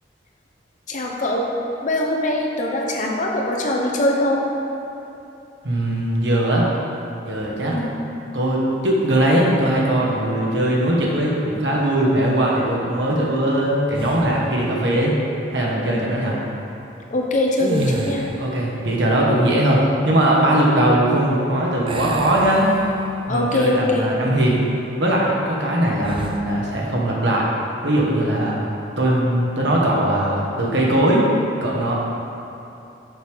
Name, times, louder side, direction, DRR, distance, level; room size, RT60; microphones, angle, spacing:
voice 1, 0.9-1.5 1.8-4.4 7.7-7.9 17.1-18.3 23.3-24.1, left 1 dB, 45° left, -1 dB, 0.7 m, -22 dB
voice 2, 5.6-6.7 7.2-7.8 8.3-15.1 15.5-16.4 18.4-22.7 23.3-24.6 25.0-27.5 27.8-28.6 29.0-31.2 31.6-31.9, right 1 dB, 70° right, -4 dB, 1.2 m, -20 dB
sound 1, 13.9-14.6 17.5-18.6 21.9-23.3 23.8-24.0 26.0-26.5, right 1 dB, 30° right, 0.4 m, -29 dB
6.5 x 6.1 x 3.4 m, 2.8 s
head